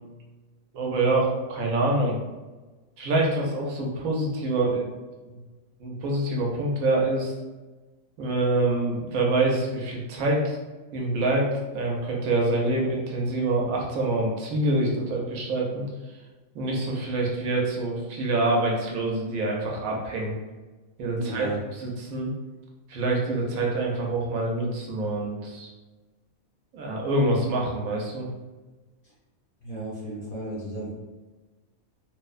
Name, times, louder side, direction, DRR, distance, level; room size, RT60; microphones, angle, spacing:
voice 1, 0.7-2.2 3.0-4.9 5.3-5.4 5.8-7.3 8.2-10.6 10.9-15.8 16.5-20.3 21.0-21.5 21.7-22.3 22.9-25.7 26.7-28.3, right 2 dB, 75° right, -1 dB, 1.0 m, -26 dB
voice 2, 21.2-21.6 29.6-30.9, right 2 dB, 50° left, -8 dB, 0.7 m, -34 dB
2.9 x 2.1 x 2.3 m, 1.2 s
omnidirectional pair, 1.5 m